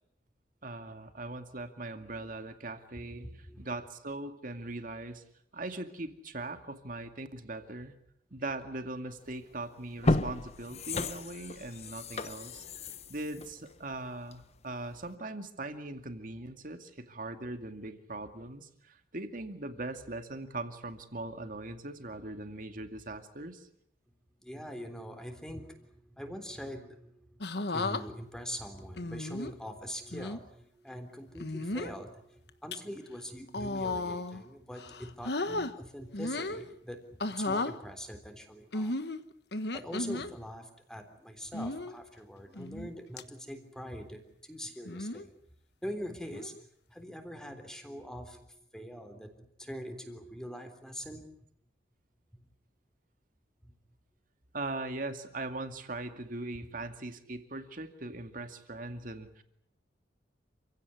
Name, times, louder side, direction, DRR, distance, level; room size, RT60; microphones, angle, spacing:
voice 1, 0.6-3.3 3.6-5.2 5.5-7.9 8.3-12.6 13.1-23.7 54.5-59.4, right 2 dB, 50° right, 7 dB, 2.3 m, -40 dB
voice 2, 3.0-3.7 24.4-27.4 27.7-38.9 39.7-45.3 45.8-46.5 46.9-51.3 52.4-52.5 53.6-53.7 56.6-56.7 58.1-58.2, equal, 5° left, 6 dB, 3.5 m, -43 dB
sound 1, 9.3-9.4 9.9-14.6 15.0-15.1, left 2 dB, 35° left, 1.0 m, -33 dB
sound 2, 27.4-28.0 29.0-29.5 30.1-30.4 31.4-32.0 32.5-32.8 33.5-34.4 34.8-35.7 36.1-36.6 37.2-37.8 38.7-40.3 41.5-41.9 42.6-42.9 43.2-43.3 44.9-45.3 46.3-46.6, left 2 dB, 65° left, 1.3 m, -34 dB
28.0 x 16.5 x 9.8 m, 0.73 s
head